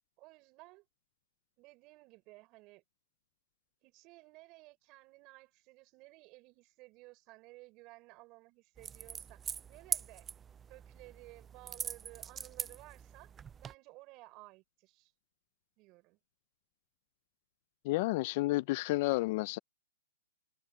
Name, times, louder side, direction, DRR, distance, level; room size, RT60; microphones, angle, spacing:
voice 1, 0.2-0.9 1.6-2.8 3.8-10.3 10.7-13.3 13.6-15.1 15.8-16.2, right 22 dB, 30° right, 5.2 m, -56 dB
sound 1, 8.8-13.7, right 7 dB, 15° right, 0.4 m, -42 dB
voice 2, 17.8-19.6, left 20 dB, 40° left, 0.5 m, -31 dB
hypercardioid pair, 145°, 0 cm